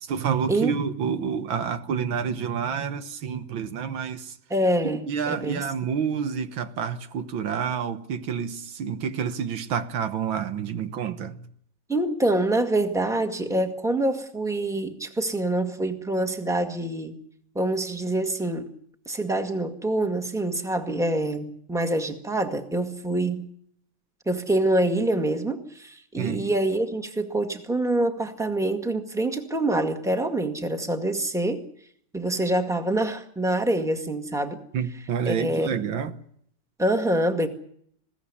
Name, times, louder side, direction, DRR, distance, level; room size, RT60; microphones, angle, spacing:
voice 1, 0.0-4.4 5.1-11.5 26.2-26.5 34.7-36.1, right 7 dB, 85° right, 2.0 m, -28 dB
voice 2, 4.5-5.7 11.9-17.2 17.6-18.7 19.1-23.5 24.3-31.6 32.1-34.6 35.3-35.8 36.8-37.5, right 1 dB, ahead, 1.8 m, -25 dB
21.5 x 16.5 x 9.9 m
omnidirectional pair, 2.1 m